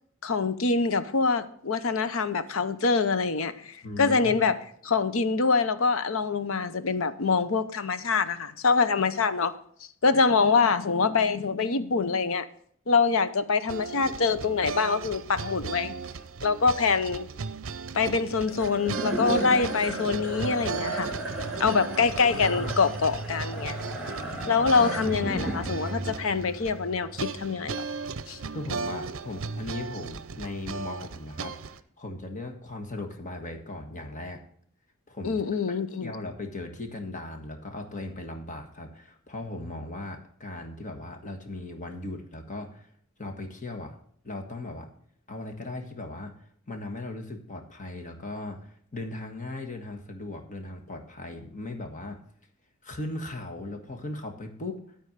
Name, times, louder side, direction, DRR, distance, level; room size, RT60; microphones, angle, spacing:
voice 1, 0.2-4.6 4.8-9.5 10.0-12.4 12.9-15.9 16.4-17.3 17.9-21.1 21.6-23.8 24.5-27.8 28.3-28.4 35.2-36.1, left 4 dB, 65° left, 0.7 m, -25 dB
voice 2, 3.8-4.5 22.1-22.8 24.8-24.9 28.5-34.4 35.1-35.4 36.0-42.9 43.2-43.9 44.2-44.9 45.3-46.3 46.7-52.2 52.8-54.8, left 2 dB, 35° left, 1.4 m, -38 dB
sound 1, 13.7-31.8, right 4 dB, 65° right, 0.6 m, -36 dB
sound 2, 18.5-29.0, right 1 dB, 5° right, 2.0 m, -35 dB
12.5 x 4.4 x 6.6 m
head